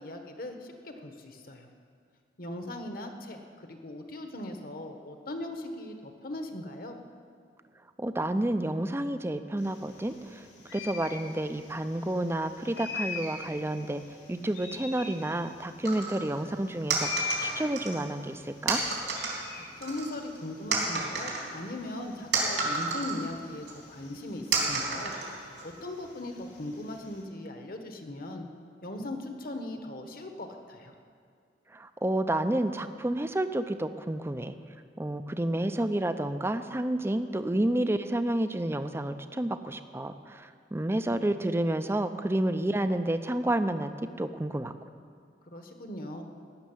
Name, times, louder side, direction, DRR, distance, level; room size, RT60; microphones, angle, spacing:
voice 1, 0.0-1.7 2.4-7.0 19.8-25.1 25.6-28.5 28.8-30.9 45.5-46.3, left 1 dB, 50° left, 5 dB, 1.3 m, -39 dB
voice 2, 8.0-10.4 10.7-14.0 14.3-18.8 31.7-34.6 35.0-44.7, right 1 dB, 15° right, 9 dB, 0.5 m, -30 dB
sound 1, 9.6-27.2, left 4 dB, 90° left, 3.7 m, -43 dB
sound 2, 15.8-16.2 16.9-18.0 18.7-19.4 19.8-20.4 20.7-23.2 23.7-23.8 24.5-25.6, right 4 dB, 80° right, 3.4 m, -30 dB
15.5 x 6.6 x 9.8 m, 2.2 s
head